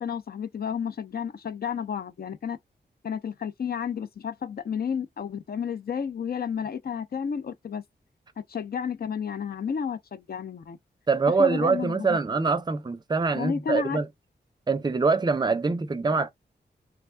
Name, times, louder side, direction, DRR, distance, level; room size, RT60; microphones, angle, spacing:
voice 1, 0.0-2.6 3.0-7.8 8.4-10.8 11.4-12.2 13.3-14.0, left 7 dB, 60° left, 0.5 m, -31 dB
voice 2, 11.1-14.1 14.7-16.3, right 4 dB, 25° right, 0.5 m, -24 dB
3.4 x 2.2 x 3.2 m
wide cardioid pair, 175°, 18 cm